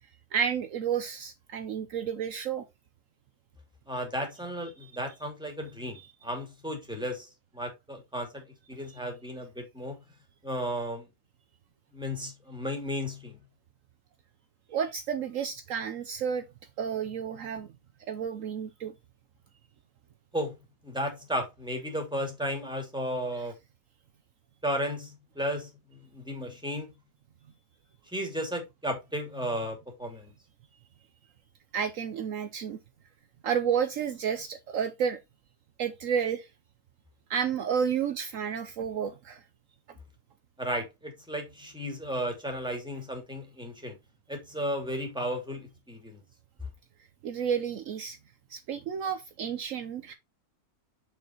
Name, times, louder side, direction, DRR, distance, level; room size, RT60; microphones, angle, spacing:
voice 1, 0.3-2.6 8.8-9.0 14.7-16.5 16.8-17.7 18.1-18.9 31.7-32.8 33.4-35.2 35.8-36.5 37.3-39.4 47.2-48.2 48.5-50.1, right 7 dB, 70° right, 1.1 m, -31 dB
voice 2, 3.9-10.0 10.4-11.1 11.9-13.4 20.3-20.6 20.8-23.6 24.6-26.9 28.1-30.3 40.6-44.0 44.3-46.2, equal, 5° right, 2.4 m, -34 dB
6.6 x 6.1 x 2.9 m
omnidirectional pair, 1.5 m